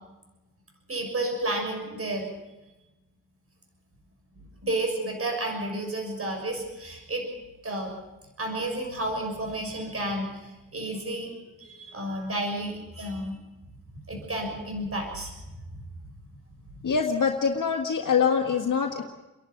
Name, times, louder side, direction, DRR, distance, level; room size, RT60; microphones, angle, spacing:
voice 1, 0.9-2.3 4.6-7.2 7.6-7.9 8.4-11.3 11.6-13.4 13.9-15.3 16.7-16.8, right 1 dB, 45° right, 2 dB, 6.4 m, -31 dB
voice 2, 16.8-19.0, left 6 dB, 70° left, 2 dB, 1.6 m, -24 dB
29.0 x 11.5 x 9.4 m, 1.1 s
wide cardioid pair, 95°, 32 cm